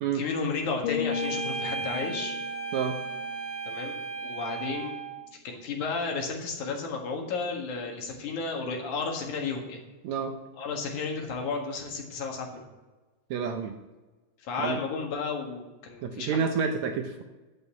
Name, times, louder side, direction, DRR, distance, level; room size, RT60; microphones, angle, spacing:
voice 1, 0.1-2.3 3.7-4.0 4.2-5.0 5.4-9.8 10.6-12.7 14.4-16.4, left 4 dB, 65° left, 1 dB, 2.9 m, -33 dB
sound 1, 0.8-4.8 5.2-5.5, left 7 dB, 85° left, 2.2 m, -37 dB
sound 2, 1.1-5.3, right 5 dB, 45° right, 0.8 m, -35 dB
voice 2, 10.0-10.4 13.3-13.8 14.6-14.8 16.0-17.2, right 6 dB, 75° right, 6 dB, 1.8 m, -29 dB
11.0 x 5.7 x 8.2 m, 1.2 s
omnidirectional pair, 3.8 m